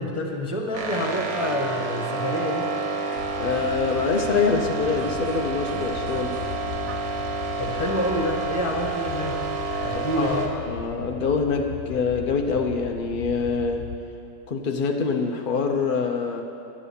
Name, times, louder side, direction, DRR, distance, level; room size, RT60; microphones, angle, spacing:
voice 1, 0.0-2.7 7.6-9.4 9.8-10.5, equal, 20° left, 1 dB, 1.2 m, -28 dB
sound 1, 0.7-10.5, right 4 dB, 90° right, 2.0 m, -29 dB
sound 2, 3.1-4.6 5.0-7.2, right 8 dB, 70° right, 1.0 m, -42 dB
sound 3, 3.2-14.0, left 7 dB, 85° left, 1.4 m, -38 dB
voice 2, 3.3-6.4 9.9-13.9 14.5-16.4, left 5 dB, 60° left, 2 dB, 0.5 m, -25 dB
11.5 x 9.8 x 7.0 m, 2.6 s
omnidirectional pair, 1.9 m